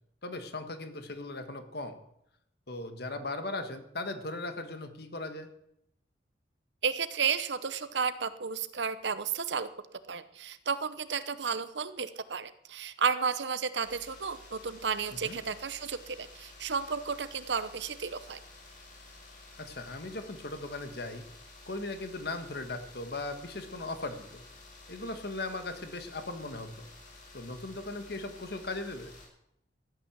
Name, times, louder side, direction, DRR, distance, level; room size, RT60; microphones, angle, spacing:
voice 1, 0.2-2.0 2.7-5.5 15.2-15.4 19.6-21.2 21.7-24.4 24.9-26.9 27.3-29.1, left 2 dB, 60° left, 8 dB, 1.7 m, -38 dB
voice 2, 6.8-9.7 10.1-18.4, right 6 dB, 75° right, 13 dB, 0.9 m, -32 dB
sound 1, 13.8-29.3, left 2 dB, 45° left, 6.3 m, -52 dB
14.5 x 9.1 x 7.4 m, 0.78 s
head